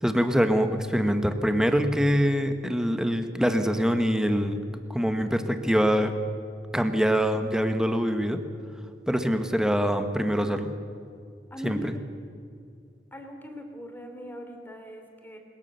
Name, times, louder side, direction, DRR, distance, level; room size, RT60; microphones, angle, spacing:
voice 1, 0.0-4.6 4.9-6.1 6.7-8.4 9.1-10.7 11.6-11.9, equal, 5° right, 7 dB, 1.3 m, -24 dB
voice 2, 11.5-11.9 13.1-15.4, equal, 10° left, 3 dB, 3.1 m, -40 dB
21.5 x 20.5 x 6.9 m, 2.4 s
head